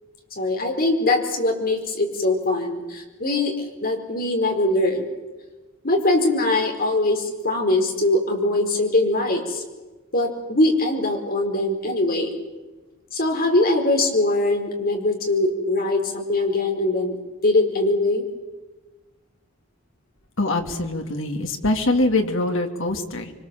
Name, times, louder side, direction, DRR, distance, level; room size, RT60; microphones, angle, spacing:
voice 1, 0.4-3.5 3.8-5.1 5.8-9.6 10.1-12.3 13.1-17.2 17.4-18.2, left 2 dB, 45° left, 3 dB, 4.8 m, -22 dB
voice 2, 20.4-23.3, left 2 dB, 70° left, 4 dB, 2.7 m, -23 dB
25.5 x 24.5 x 7.7 m, 1.2 s
head